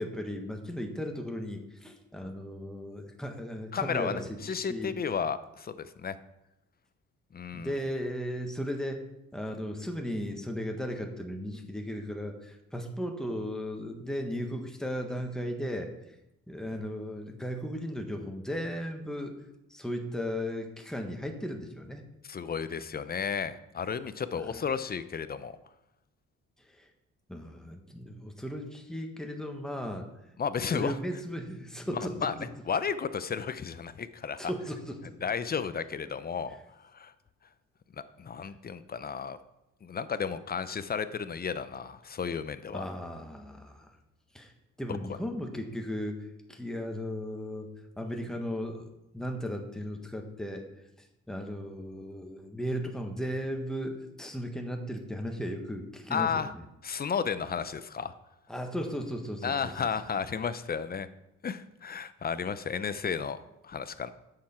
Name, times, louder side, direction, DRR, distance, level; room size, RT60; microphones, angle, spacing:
voice 1, 0.0-4.9 7.5-9.0 9.3-15.9 16.5-19.3 19.7-22.0 24.3-24.6 26.8-26.9 27.3-30.1 30.7-32.3 34.4-35.1 42.7-43.9 44.3-44.5 44.8-46.2 46.5-48.9 49.1-50.7 51.3-56.6 58.5-59.7, equal, ahead, 3 dB, 1.4 m, -36 dB
voice 2, 3.7-6.2 7.3-7.7 22.2-25.6 30.4-31.0 31.9-32.3 32.7-34.4 35.2-36.6 36.9-37.1 38.2-39.4 39.8-42.8 44.9-45.0 56.1-56.5 56.8-58.1 59.4-61.1 61.4-64.1, left 6 dB, 30° left, 13 dB, 0.6 m, -33 dB
9.2 x 6.8 x 4.4 m, 0.90 s
cardioid pair, 90°, 30 cm